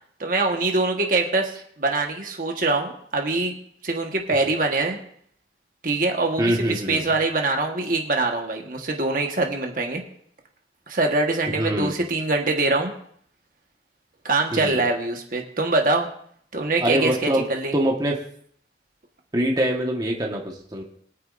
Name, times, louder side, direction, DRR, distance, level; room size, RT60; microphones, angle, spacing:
voice 1, 0.2-3.5 3.8-5.0 5.8-10.0 10.9-12.9 14.2-16.1 16.5-17.7, right 3 dB, 50° right, 2 dB, 1.4 m, -24 dB
voice 2, 6.4-7.0 11.5-11.9 14.5-14.8 16.8-17.4 17.7-18.2 19.3-20.8, right 1 dB, 20° right, 0 dB, 1.4 m, -24 dB
23.0 x 9.2 x 2.6 m, 0.63 s
head